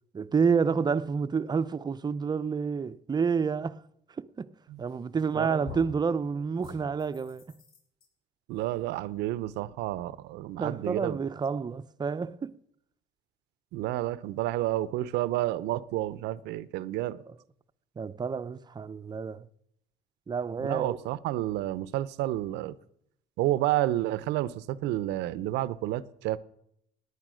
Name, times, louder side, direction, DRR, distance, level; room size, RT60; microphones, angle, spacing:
voice 1, 0.1-3.8 4.2-4.5 4.8-7.4 10.6-12.6 17.3-17.4 18.0-19.5 20.3-21.0, right 5 dB, 25° right, 0.6 m, -29 dB
sound 1, 4.9-5.3 5.6-6.1 6.6-8.0, left 3 dB, 65° left, 5.4 m, -45 dB
voice 2, 5.3-5.7 8.5-11.2 13.7-17.2 20.6-22.7 23.4-26.4, right 15 dB, 85° right, 0.7 m, -30 dB
17.5 x 9.9 x 6.3 m
cardioid pair, 110°, 17 cm